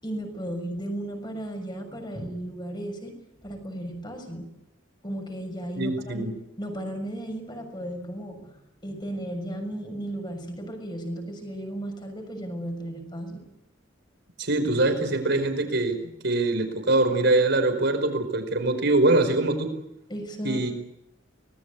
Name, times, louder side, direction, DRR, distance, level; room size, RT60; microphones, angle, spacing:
voice 1, 0.0-3.2 3.4-4.5 5.0-6.3 6.6-8.5 8.8-13.4 20.1-20.7, right 1 dB, 25° left, 4 dB, 6.4 m, -35 dB
voice 2, 5.8-6.3 14.4-16.0 16.2-19.7 20.4-20.7, right 2 dB, 65° right, 7 dB, 5.0 m, -23 dB
25.0 x 20.0 x 8.4 m, 0.84 s
head